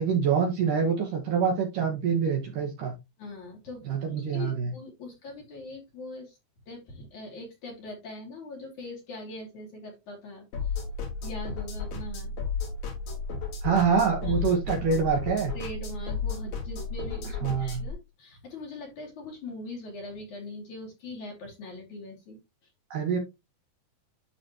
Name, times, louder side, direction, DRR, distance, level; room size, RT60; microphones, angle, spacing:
voice 1, 0.0-2.9 3.9-4.7 13.6-15.5 17.4-17.8 22.9-23.2, right 6 dB, 60° right, 2 dB, 2.5 m, -25 dB
voice 2, 3.2-3.8 4.1-6.4 6.7-10.7 11.2-12.3 14.2-14.6 15.5-22.4, left 2 dB, 50° left, -1 dB, 3.8 m, -41 dB
sound 1, 10.5-17.9, left 4 dB, 70° left, 5.4 m, -33 dB
12.0 x 4.1 x 2.9 m, 0.22 s
omnidirectional pair, 4.9 m